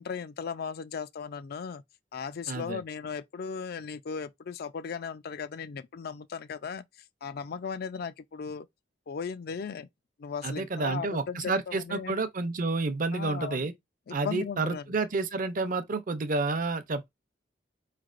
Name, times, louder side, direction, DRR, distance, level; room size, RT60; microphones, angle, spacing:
voice 1, 0.0-1.8 2.1-6.8 7.2-8.7 9.1-9.9 10.2-12.2 13.1-13.7 14.1-14.8, left 6 dB, 55° left, 0.4 m, -37 dB
voice 2, 2.5-2.8 10.4-13.7 14.1-17.1, right 3 dB, 50° right, 0.6 m, -30 dB
4.5 x 3.2 x 2.4 m
head